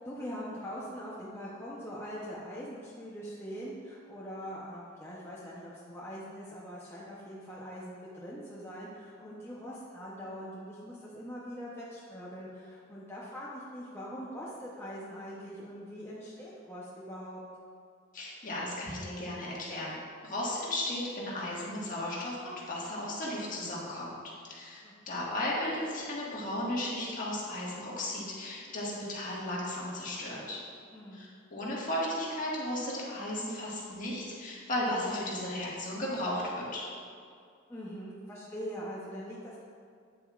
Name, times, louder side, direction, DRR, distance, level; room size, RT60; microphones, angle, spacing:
voice 1, 0.0-17.4 24.8-25.0 30.9-31.2 37.7-39.6, equal, 10° left, -7 dB, 0.8 m, -42 dB
voice 2, 18.1-20.0 20.2-24.1 24.4-30.6 31.1-36.8, left 1 dB, 40° left, -5 dB, 1.7 m, -35 dB
9.0 x 7.6 x 2.4 m, 2.2 s
head